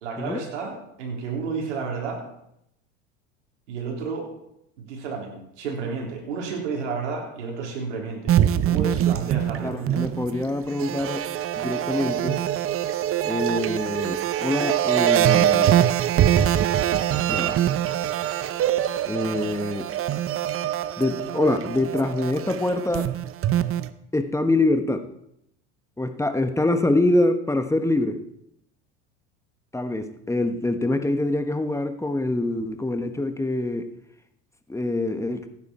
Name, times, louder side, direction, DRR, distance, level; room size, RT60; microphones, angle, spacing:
voice 1, 0.0-2.2 3.7-4.3 4.8-8.4 8.6-10.0, right 5 dB, 85° right, 0 dB, 3.6 m, -31 dB
sound 1, 8.3-23.9, right 11 dB, 40° right, 0.8 m, -23 dB
voice 2, 9.6-11.3 11.6-12.4 13.2-15.8 17.3-17.6 19.1-19.9 21.0-23.1 24.1-25.1 26.0-28.2 29.7-33.9 34.7-35.5, left 2 dB, 10° left, 8 dB, 1.3 m, -25 dB
16.0 x 9.7 x 4.3 m, 0.78 s
hypercardioid pair, 85°, 35 cm